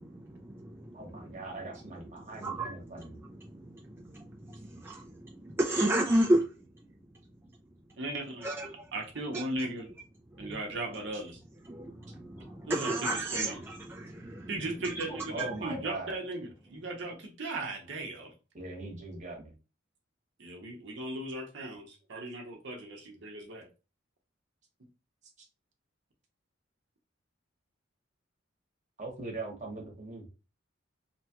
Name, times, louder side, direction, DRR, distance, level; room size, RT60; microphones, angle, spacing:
voice 1, 0.0-1.4 1.7-6.5 8.4-8.9 9.3-9.4 10.3-10.6 11.7-15.1 15.4-15.6, right 1 dB, 10° right, 0.3 m, -33 dB
voice 2, 0.9-3.2 15.3-16.2 18.5-19.5 29.0-30.2, right 2 dB, 40° right, 1.0 m, -41 dB
voice 3, 8.0-9.9 10.4-11.4 12.7-13.6 14.5-18.3 20.4-23.7, right 2 dB, 65° right, 0.7 m, -37 dB
Bird, 11.7-17.2, equal, 20° left, 0.9 m, -51 dB
2.9 x 2.2 x 2.8 m
head